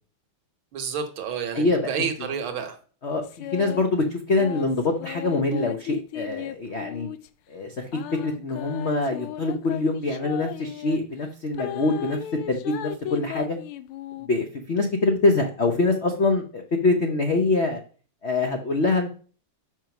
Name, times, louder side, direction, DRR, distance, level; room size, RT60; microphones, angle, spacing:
voice 1, 0.7-2.8, right 6 dB, 70° right, 6 dB, 1.8 m, -30 dB
voice 2, 1.5-1.9 3.0-7.1 7.5-7.9 8.2-13.6 14.2-17.8 18.2-19.1, left 3 dB, 60° left, 4 dB, 0.7 m, -24 dB
sound 1, 3.2-3.9 4.4-7.3 7.9-11.0 11.5-14.3, left 12 dB, 85° left, 1.5 m, -36 dB
6.1 x 5.2 x 5.8 m, 0.41 s
omnidirectional pair, 2.3 m